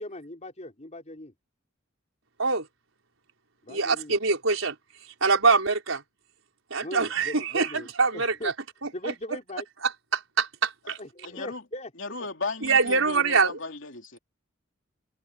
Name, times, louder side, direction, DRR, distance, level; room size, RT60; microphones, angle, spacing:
voice 1, 0.0-1.3 3.6-4.2 6.8-7.9 8.1-8.5 8.9-9.6 11.0-11.9, left 1 dB, 35° left, 4.7 m, -39 dB
voice 2, 3.7-4.7 5.2-6.0 6.7-8.5 8.8-9.1 9.8-11.0 12.6-13.6, right 4 dB, 85° right, 4.6 m, -24 dB
voice 3, 11.2-11.6 12.0-14.2, left 3 dB, 65° left, 3.4 m, -36 dB
head